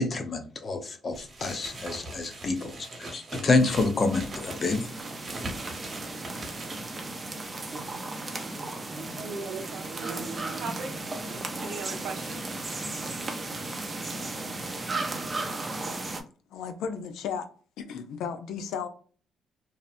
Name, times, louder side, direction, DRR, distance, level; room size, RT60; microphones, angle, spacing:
voice 1, 0.0-4.9, left 3 dB, 40° left, 0.6 m, -27 dB
sound 1, 1.1-7.1, right 2 dB, 40° right, 1.0 m, -41 dB
sound 2, 3.7-16.2, right 2 dB, 25° right, 0.5 m, -35 dB
voice 2, 9.2-12.6 13.5-13.6, right 4 dB, 75° right, 0.6 m, -39 dB
voice 3, 16.5-17.5 17.8-18.9, left 6 dB, 85° left, 0.4 m, -34 dB
2.7 x 2.0 x 2.5 m
cardioid pair, 90°, 0 cm